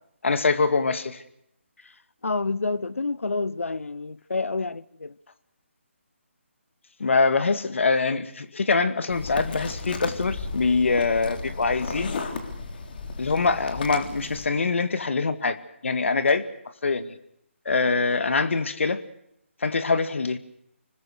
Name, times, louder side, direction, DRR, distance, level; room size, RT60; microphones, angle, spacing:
voice 1, 0.2-1.2 7.0-12.1 13.2-15.6 15.8-16.4 16.8-17.2 17.7-19.0 19.6-20.4, left 4 dB, 65° left, 2.2 m, -24 dB
voice 2, 2.2-5.1, left 3 dB, 85° left, 1.0 m, -28 dB
sound 1, 9.1-14.5, left 4 dB, 45° left, 3.6 m, -34 dB
26.5 x 20.5 x 6.6 m
figure-of-eight pair, 155°, 7 cm